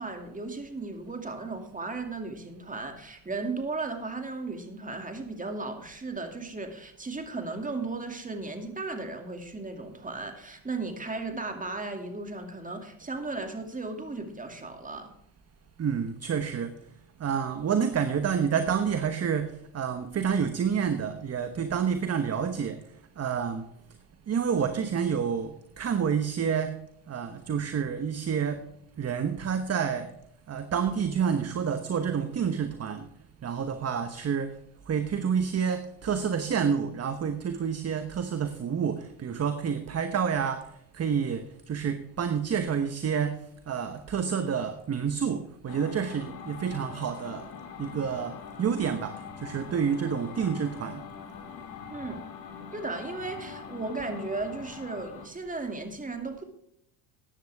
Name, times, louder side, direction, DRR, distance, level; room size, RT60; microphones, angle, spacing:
voice 1, 0.0-15.1 51.9-52.2 52.7-56.4, right 3 dB, 15° right, 5 dB, 2.5 m, -35 dB
voice 2, 15.8-16.7 17.2-22.8 23.2-23.7 24.3-26.8 27.1-28.6 29.0-30.1 30.5-33.1 33.4-34.5 34.9-40.6 40.9-43.4 43.7-47.4 47.8-51.0, right 7 dB, 35° right, 9 dB, 1.1 m, -29 dB
sound 1, 45.7-55.3, left 7 dB, 90° left, 2.2 m, -43 dB
14.5 x 10.5 x 3.5 m, 0.74 s
supercardioid pair, 85°, 46 cm